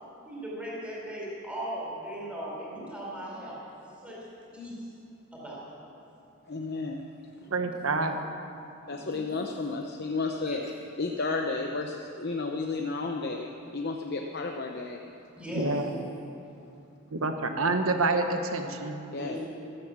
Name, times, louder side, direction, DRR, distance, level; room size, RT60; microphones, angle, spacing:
voice 1, 0.3-3.6 4.0-4.3 4.5-4.9 5.3-5.7 7.3-7.7 8.8-9.4 10.4-10.6 15.4-15.9 19.2-19.4, equal, 5° right, -6 dB, 4.6 m, -38 dB
voice 2, 6.5-7.0 8.9-10.6 11.0-15.0 19.1-19.4, left 3 dB, 50° left, 2 dB, 0.8 m, -32 dB
voice 3, 7.5-8.2 15.5-15.9 17.1-19.0, right 3 dB, 75° right, 6 dB, 1.2 m, -27 dB
14.0 x 13.5 x 7.4 m, 2.7 s
head